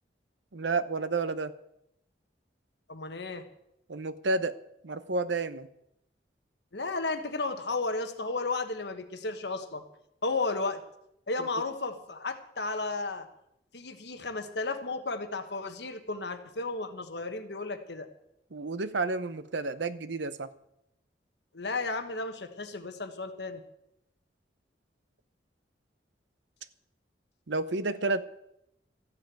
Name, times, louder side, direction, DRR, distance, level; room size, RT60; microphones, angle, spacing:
voice 1, 0.5-1.5 3.9-4.6 4.8-5.7 18.5-20.5 27.5-28.2, right 3 dB, 80° right, 14 dB, 0.8 m, -30 dB
voice 2, 2.9-3.5 6.7-9.8 10.2-10.8 11.3-13.3 13.7-18.1 21.5-23.6, left 3 dB, 70° left, 7 dB, 1.3 m, -33 dB
14.0 x 7.5 x 9.1 m, 0.81 s
head